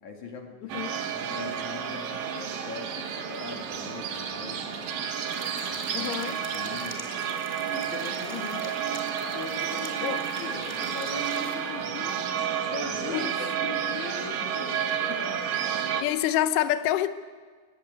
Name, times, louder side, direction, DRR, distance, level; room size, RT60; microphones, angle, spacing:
voice 1, 0.0-4.9 5.6-6.1 6.5-7.1 7.7-8.7 9.3-12.3 12.7-15.4, left 4 dB, 50° left, 2.8 m, -41 dB
sound 1, 0.7-16.0, right 8 dB, 65° right, 3.4 m, -31 dB
sound 2, 5.3-11.5, equal, 5° right, 2.0 m, -44 dB
voice 2, 5.9-6.4 8.3-8.6 10.0-10.2 13.1-13.3 15.8-17.1, left 12 dB, 85° left, 1.8 m, -27 dB
24.5 x 19.0 x 8.1 m
omnidirectional pair, 5.1 m